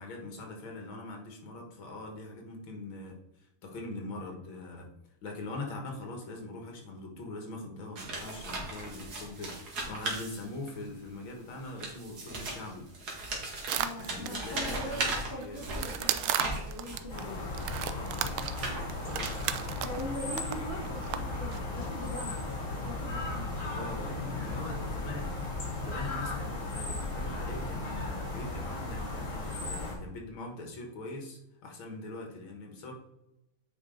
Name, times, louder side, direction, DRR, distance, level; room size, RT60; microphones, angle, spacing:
voice 1, 0.0-4.9 5.2-12.9 13.9-16.0 17.9-18.4 19.0-19.7 23.6-25.4 25.8-32.9, left 2 dB, 75° left, 2 dB, 2.3 m, -42 dB
sound 1, 8.0-10.9 11.6-17.1 17.7-19.7, right 2 dB, 50° right, 2.2 m, -37 dB
voice 2, 13.7-17.7 19.8-24.8, equal, 30° left, -2 dB, 1.9 m, -42 dB
sound 2, 13.7-15.0 15.4-17.2 17.5-20.1 20.4-20.5 20.9-21.2 21.5-21.6, right 11 dB, 85° right, 1.4 m, -34 dB
sound 3, 17.1-29.9, left 2 dB, 55° left, 2.9 m, -36 dB
8.4 x 4.9 x 3.8 m, 0.88 s
omnidirectional pair, 2.2 m